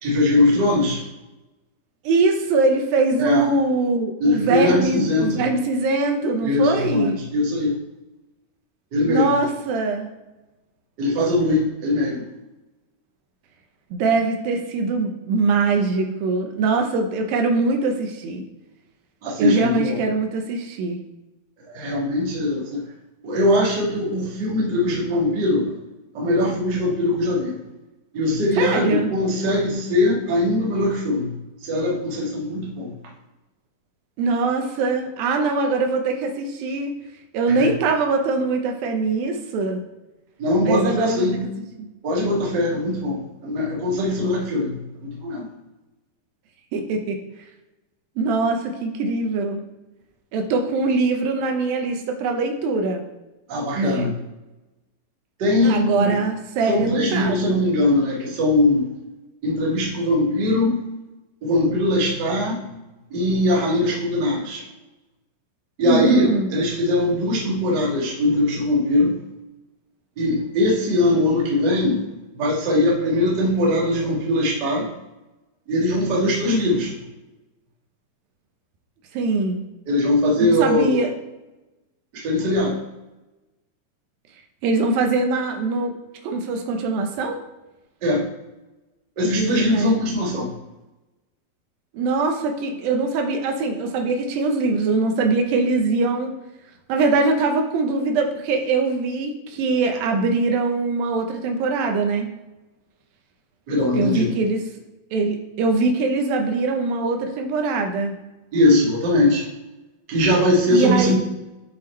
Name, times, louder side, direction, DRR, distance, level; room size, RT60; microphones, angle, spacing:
voice 1, 0.0-1.0 3.2-3.5 4.2-5.5 6.4-7.7 8.9-9.3 11.0-12.3 19.2-20.0 21.6-22.8 23.2-25.7 26.1-27.6 28.1-32.9 37.5-37.7 40.4-41.4 42.0-45.5 53.5-54.1 55.4-56.2 56.6-58.9 59.4-60.8 61.4-62.7 63.1-64.6 65.8-69.1 70.2-72.0 72.3-74.9 75.7-77.0 79.9-81.0 82.1-82.8 88.0-88.3 89.1-90.5 103.7-104.3 108.5-109.4 110.1-111.2, left 1 dB, 45° right, -4 dB, 1.5 m, -21 dB
voice 2, 2.0-7.2 9.1-10.1 13.9-18.4 19.4-21.0 28.6-29.1 34.2-36.9 37.3-39.8 40.7-41.3 41.8-41.9 46.7-47.2 48.2-49.6 50.3-53.0 53.8-54.1 55.6-57.6 65.8-66.5 79.1-79.6 80.4-81.1 84.6-85.9 86.2-87.4 89.2-90.0 91.9-96.3 96.9-102.3 103.9-104.6 105.1-108.2 110.7-111.2, right 3 dB, 80° right, 4 dB, 2.5 m, -22 dB
7.4 x 4.6 x 4.2 m, 1.0 s
omnidirectional pair, 4.2 m